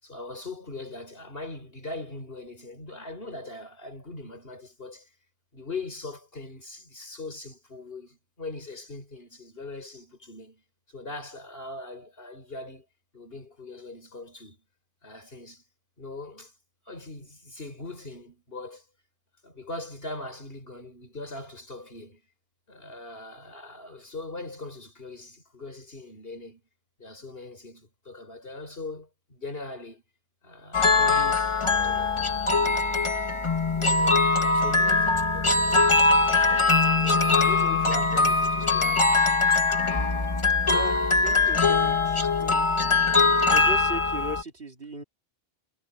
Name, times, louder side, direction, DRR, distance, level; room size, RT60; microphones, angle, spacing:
voice 1, 0.0-5.1 5.5-10.6 10.9-12.9 13.1-14.6 15.0-15.6 16.0-16.5 16.9-18.8 19.4-22.2 22.7-26.6 27.0-30.0 30.4-33.2 33.7-35.9 36.2-39.1, left 2 dB, 65° left, 4.7 m, -41 dB
sound 1, 30.7-44.4, left 3 dB, 30° left, 1.4 m, -22 dB
voice 2, 41.2-42.7 43.5-45.0, right 1 dB, 65° right, 2.9 m, -37 dB
omnidirectional pair, 1.1 m